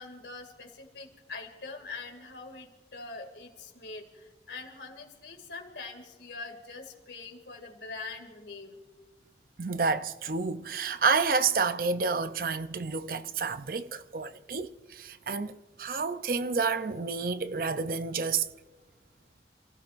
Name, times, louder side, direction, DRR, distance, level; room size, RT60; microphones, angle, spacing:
voice 1, 0.0-8.8, left 3 dB, 80° left, 2.4 m, -43 dB
voice 2, 9.6-18.5, right 4 dB, 50° right, 0.6 m, -29 dB
29.0 x 16.0 x 2.6 m
head